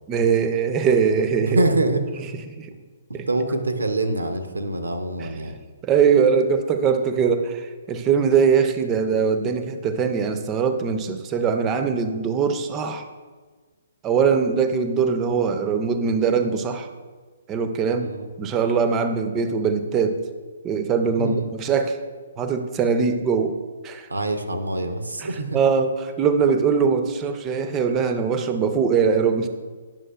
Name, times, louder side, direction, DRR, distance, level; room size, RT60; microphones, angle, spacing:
voice 1, 0.1-1.6 2.6-2.7 3.1-3.3 5.2-5.3 5.8-13.0 14.0-16.9 17.5-18.1 18.4-20.2 20.6-22.0 22.4-23.6 23.8-24.1 25.2-29.5, right 6 dB, 20° right, 8 dB, 0.5 m, -21 dB
voice 2, 1.4-2.3 3.1-5.6 17.9-18.3 21.0-21.5 24.1-25.6, right 2 dB, 80° right, 7 dB, 0.6 m, -25 dB
8.8 x 6.2 x 2.3 m, 1.4 s
figure-of-eight pair, 125°, 0 cm